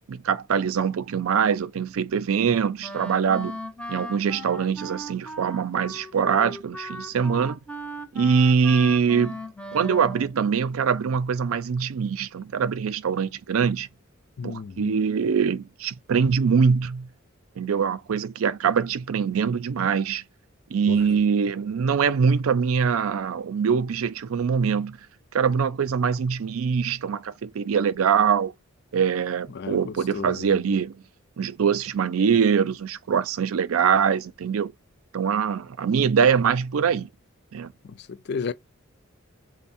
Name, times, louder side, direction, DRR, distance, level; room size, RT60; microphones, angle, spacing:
voice 1, 0.1-3.6 3.9-7.6 8.1-9.4 9.7-13.9 14.4-17.1 17.6-20.2 20.7-25.0 25.3-28.5 28.9-30.9 31.4-34.7 35.1-37.1 37.5-37.7, right 6 dB, 85° right, 0.4 m, -23 dB
Wind instrument woodwind instrument, 2.8-10.3, equal, 5° left, 0.6 m, -37 dB
voice 2, 14.4-14.9 20.9-21.0 29.5-30.5 37.8-38.5, left 5 dB, 55° left, 0.4 m, -33 dB
3.5 x 2.1 x 4.0 m
head